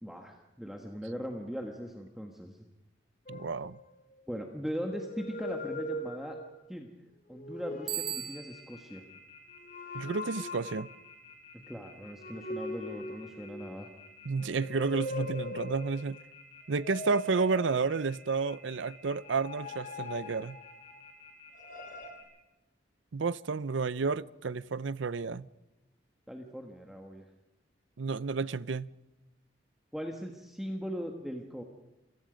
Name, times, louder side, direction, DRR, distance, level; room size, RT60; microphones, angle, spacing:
voice 1, 0.0-2.6 4.3-6.4 6.7-6.9 7.3-9.0 11.7-13.9 26.3-27.2 29.9-31.6, equal, ahead, 1.5 m, -39 dB
sound 1, 3.3-4.2 4.7-6.7 7.3-8.3 9.6-11.0 12.2-13.9 14.4-16.1 16.7-18.3 19.2-21.0 21.5-22.1, left 1 dB, 45° left, 3.0 m, -41 dB
voice 2, 3.3-3.8 9.9-10.9 14.3-16.2 16.7-20.6 23.1-25.5 28.0-28.9, right 4 dB, 75° right, 0.6 m, -31 dB
Telephone, 7.9-22.2, left 6 dB, 30° left, 6.4 m, -53 dB
Bicycle bell, 7.9-8.8, right 12 dB, 50° right, 1.7 m, -37 dB
28.0 x 18.0 x 5.2 m
head